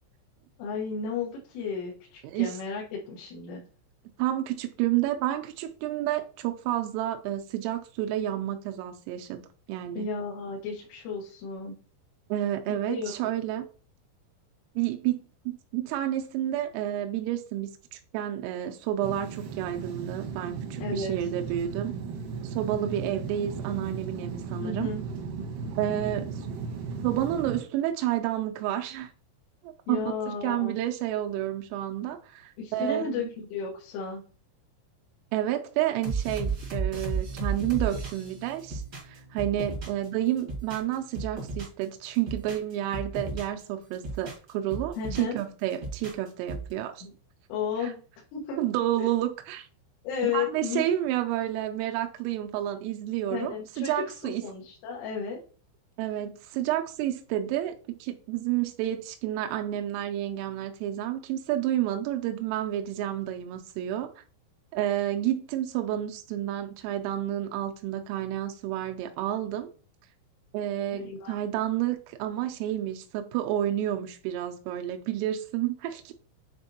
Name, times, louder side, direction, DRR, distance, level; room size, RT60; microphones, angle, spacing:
voice 1, 0.6-3.6 10.0-11.8 12.7-13.1 20.8-21.3 24.6-25.0 29.9-30.8 32.6-34.2 45.0-45.4 47.0-47.1 47.5-48.0 48.3-48.6 49.0-49.1 50.0-50.9 53.3-53.9 54.2-55.4 70.9-71.4, left 5 dB, 80° left, 3.7 m, -33 dB
voice 2, 2.2-2.6 4.2-9.4 9.7-10.1 12.3-13.7 14.8-21.9 22.4-24.9 25.8-26.5 27.0-29.1 29.6-33.3 35.3-47.1 47.8-47.9 48.6-49.7 50.2-54.4 56.0-64.2 64.7-69.7 70.5-76.1, right 12 dB, 90° right, 3.2 m, -30 dB
sound 1, 19.0-27.6, right 5 dB, 75° right, 2.1 m, -36 dB
sound 2, 36.0-40.1 40.4-41.8 42.1-43.6 43.9-45.4 45.7-46.7, right 4 dB, 50° right, 1.1 m, -34 dB
9.4 x 4.4 x 2.8 m
omnidirectional pair, 5.7 m